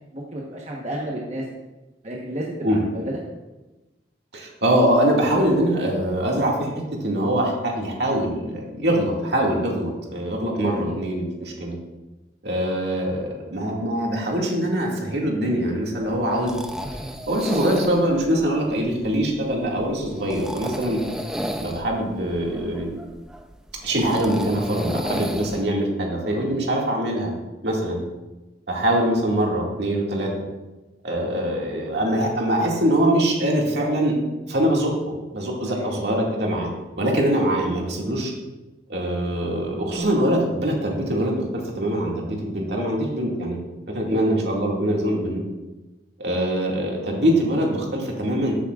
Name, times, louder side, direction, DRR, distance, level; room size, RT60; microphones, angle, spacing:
voice 1, 0.0-1.4 2.0-3.2 10.6-10.9 20.8-21.0 35.7-35.9 44.1-44.3, right 1 dB, 40° right, -3 dB, 1.1 m, -32 dB
voice 2, 4.3-11.8 12.4-16.5 17.3-21.0 21.6-22.9 23.8-27.3 27.6-28.0 28.7-30.3 31.0-34.2 34.5-34.9 35.3-36.7 37.0-38.3 38.9-43.6 43.9-45.4 46.2-48.6, right 1 dB, 70° right, -2 dB, 2.1 m, -23 dB
sound 1, 16.0-25.6, equal, 5° right, 0.5 m, -33 dB
13.5 x 8.5 x 2.5 m, 1.1 s
head